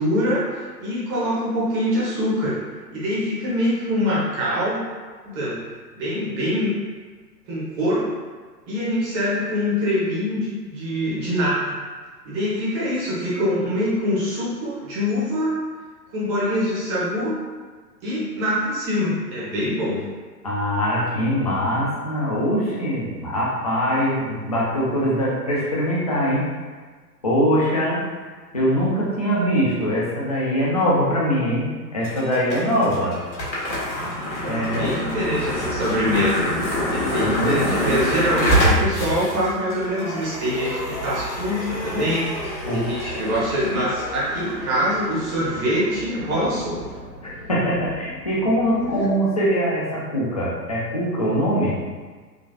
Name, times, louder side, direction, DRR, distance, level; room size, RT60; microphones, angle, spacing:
voice 1, 0.0-2.5 2.9-4.8 5.2-5.5 5.9-6.7 7.5-8.0 8.7-11.6 12.2-15.5 16.1-17.4 18.0-20.0 34.2-36.5 36.9-42.4 42.7-46.8, equal, 20° right, -7 dB, 0.8 m, -24 dB
voice 2, 20.4-26.5 27.2-28.0 28.5-33.1 34.5-35.0 37.2-37.8 42.6-42.9 47.2-51.7, equal, 25° left, -6 dB, 0.3 m, -22 dB
sound 1, 32.0-49.1, equal, 85° left, 1.3 m, -27 dB
3.9 x 2.3 x 2.7 m, 1.4 s
figure-of-eight pair, 120°, 50 cm